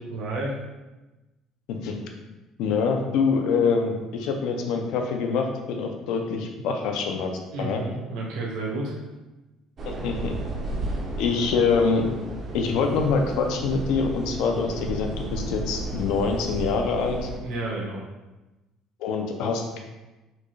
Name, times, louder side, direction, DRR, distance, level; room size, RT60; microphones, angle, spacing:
voice 1, 0.1-0.6 7.5-8.9 17.4-18.0, right 2 dB, 65° right, -3 dB, 0.9 m, -31 dB
voice 2, 2.6-7.8 9.8-10.4 11.2-12.1 12.5-17.3 19.0-19.8, left 5 dB, 65° left, 3 dB, 0.5 m, -25 dB
sound 1, 9.8-17.4, right 2 dB, 30° right, 0.6 m, -33 dB
4.4 x 2.3 x 3.1 m, 1.1 s
cardioid pair, 170°, 0 cm